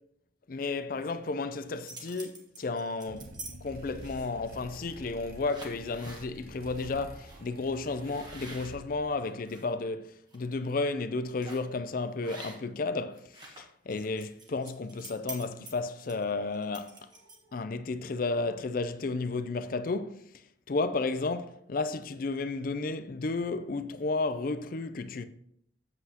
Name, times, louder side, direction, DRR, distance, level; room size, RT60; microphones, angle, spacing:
voice 1, 0.5-17.1 17.5-20.3 20.7-25.3, left 3 dB, 50° left, 0.4 m, -33 dB
sound 1, 1.6-3.5 4.0-4.4 5.0-5.2 5.5-6.3 6.7-6.9 7.2-7.4 8.0-9.6 10.1-10.4 11.4-11.7 12.2-12.8 13.1-17.6, right 2 dB, 25° right, 1.2 m, -47 dB
sound 2, 3.1-9.1, right 1 dB, 50° right, 0.9 m, -48 dB
7.8 x 7.7 x 2.9 m
head